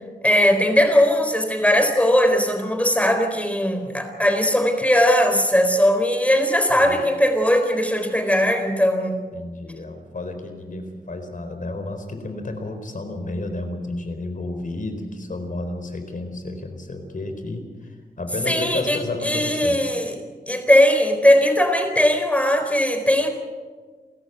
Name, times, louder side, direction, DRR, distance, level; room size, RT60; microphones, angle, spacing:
voice 1, 0.2-9.2 18.5-20.1 20.5-23.3, equal, 10° left, 6 dB, 4.0 m, -19 dB
voice 2, 9.3-19.8, left 2 dB, 60° left, 6 dB, 4.3 m, -31 dB
29.5 x 14.0 x 8.1 m, 1.5 s
wide cardioid pair, 85°, 16 cm